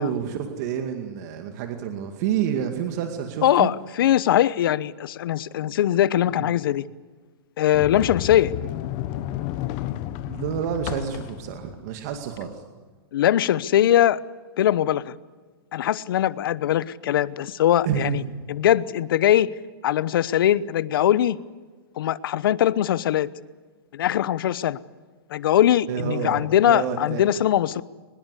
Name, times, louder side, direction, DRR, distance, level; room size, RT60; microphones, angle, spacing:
voice 1, 0.0-3.7 6.3-6.5 10.3-12.6 17.9-18.4 25.9-27.2, right 8 dB, 40° right, 5 dB, 2.2 m, -29 dB
voice 2, 3.4-6.9 7.6-8.5 13.1-14.2 14.6-15.1 15.7-18.2 18.5-19.5 19.8-21.4 22.0-23.3 23.9-24.8 25.3-27.8, left 11 dB, 60° left, 18 dB, 1.0 m, -21 dB
Sliding door, 7.7-12.6, left 13 dB, 30° left, 1.1 m, -32 dB
24.0 x 21.0 x 8.3 m, 1.4 s
hypercardioid pair, 155°, 13 cm